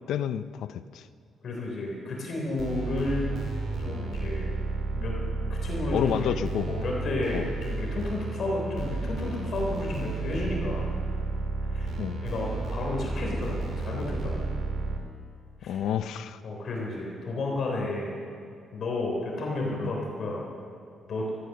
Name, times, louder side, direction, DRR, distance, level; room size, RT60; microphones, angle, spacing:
voice 1, 0.1-1.0 5.9-6.7 7.3-7.5 12.0-12.2 15.7-16.4 19.8-19.9, left 9 dB, 75° left, 13 dB, 0.5 m, -29 dB
voice 2, 1.4-3.3 3.8-4.5 4.9-5.1 5.5-6.3 6.7-10.9 11.6-11.9 12.2-14.6 15.6-15.8 16.4-18.2 18.7-20.5 21.1-21.3, left 2 dB, 50° left, -2 dB, 3.4 m, -32 dB
sound 1, 2.6-15.0, right 3 dB, 60° right, 2.1 m, -32 dB
15.0 x 14.0 x 6.6 m, 2.4 s
cardioid pair, 150°, 0 cm